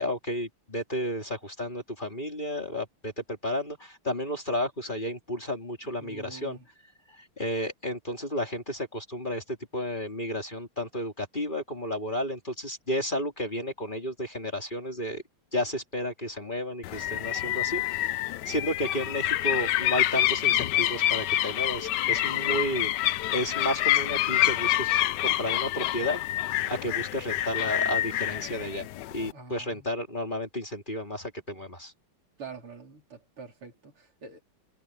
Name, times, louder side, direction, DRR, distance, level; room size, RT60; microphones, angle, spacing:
voice 1, 0.0-6.6 7.2-15.2 15.5-23.0 23.3-26.2 26.7-28.9 29.1-31.9, equal, 20° left, 3.6 m, -32 dB
voice 2, 5.8-6.7 29.3-29.9 32.4-34.4, right 4 dB, 80° right, 4.9 m, -45 dB
sound 1, 16.8-29.3, left 13 dB, 70° left, 1.0 m, -27 dB
omnidirectional pair, 2.4 m